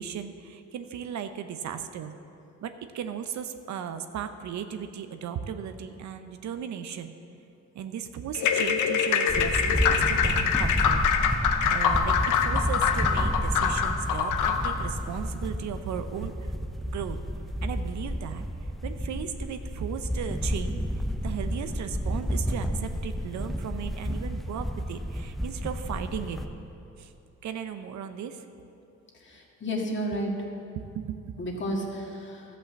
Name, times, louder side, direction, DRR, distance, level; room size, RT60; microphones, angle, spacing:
voice 1, 0.0-2.1 2.6-7.1 7.7-11.0 11.7-16.5 16.9-17.2 17.6-18.5 18.8-26.4 27.0-27.1 27.4-28.4 30.7-31.3, right 8 dB, 70° right, 9 dB, 0.7 m, -36 dB
sound 1, 8.3-14.8, left 7 dB, 85° left, 0.8 m, -25 dB
sound 2, 9.3-26.5, equal, ahead, 0.7 m, -31 dB
voice 2, 29.2-30.3 31.4-32.4, equal, 40° left, 0 dB, 2.0 m, -31 dB
12.5 x 5.6 x 7.6 m, 2.7 s
cardioid pair, 90°, 30 cm